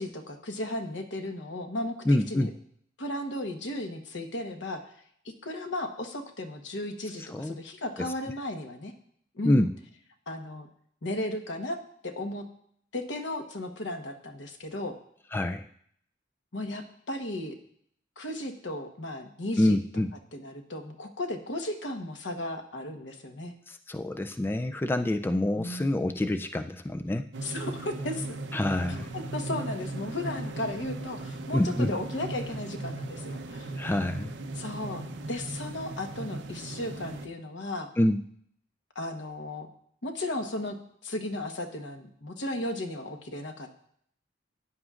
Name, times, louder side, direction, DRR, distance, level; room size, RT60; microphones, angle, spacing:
voice 1, 0.0-2.5 3.0-4.8 5.4-8.9 9.3-9.7 10.3-10.7 11.0-12.4 12.9-15.0 16.5-17.5 18.2-19.8 20.3-23.5 25.6-25.9 27.4-28.4 28.9-33.7 34.6-37.9 38.9-39.7 40.0-40.8 41.0-43.7, left 1 dB, 75° left, 4 dB, 1.2 m, -35 dB
voice 2, 2.1-2.5 7.2-7.5 8.0-8.1 9.4-9.7 15.3-15.7 19.6-20.1 23.7-27.3 28.5-29.1 31.5-32.0 33.8-34.4 38.0-38.2, left 1 dB, 10° left, 8 dB, 0.3 m, -26 dB
sound 1, 27.3-37.3, right 2 dB, 70° right, 0.7 m, -37 dB
14.5 x 9.8 x 2.5 m, 0.65 s
head